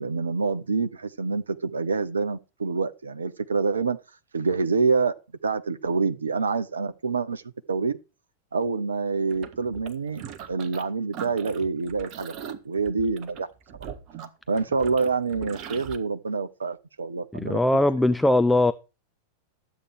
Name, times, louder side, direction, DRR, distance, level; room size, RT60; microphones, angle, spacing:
voice 1, 0.0-4.0 4.3-5.1 5.4-7.4 7.7-7.9 8.5-10.2 10.5-13.5 14.5-17.8, right 4 dB, 75° right, 0.7 m, -26 dB
sound 1, 9.3-10.8 11.1-16.0, right 8 dB, 40° right, 1.5 m, -40 dB
voice 2, 17.3-18.7, left 1 dB, 5° left, 0.5 m, -20 dB
12.5 x 8.2 x 4.7 m
figure-of-eight pair, 90°, 0 cm